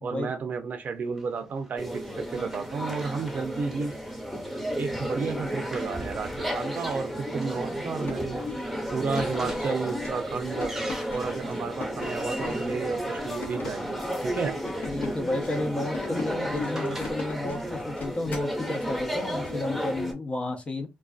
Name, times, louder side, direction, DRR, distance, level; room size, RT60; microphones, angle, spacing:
voice 1, 0.0-3.9 4.8-8.4 8.9-10.7 11.1-14.6, right 5 dB, 60° right, 0.5 m, -32 dB
Run, 1.2-13.8 14.8-17.3, right 1 dB, 10° right, 0.8 m, -46 dB
sound 1, 1.8-20.1, equal, 5° left, 1.0 m, -33 dB
sound 2, 7.8-18.6, left 4 dB, 65° left, 0.9 m, -41 dB
voice 2, 14.9-20.9, left 2 dB, 35° left, 0.7 m, -32 dB
2.4 x 2.2 x 2.3 m
cardioid pair, 75°, 3 cm